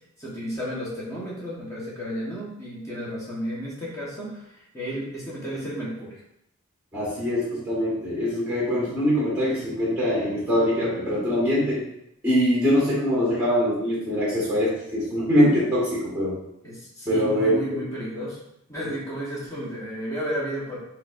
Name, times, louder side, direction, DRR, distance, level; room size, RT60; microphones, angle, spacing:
voice 1, 0.2-6.2 16.6-18.4 18.7-20.8, equal, 15° left, -6 dB, 0.9 m, -33 dB
voice 2, 6.9-11.8 12.2-16.4 17.1-17.8 18.8-18.9, equal, 5° right, -7 dB, 1.4 m, -23 dB
3.8 x 3.0 x 2.4 m, 0.79 s
head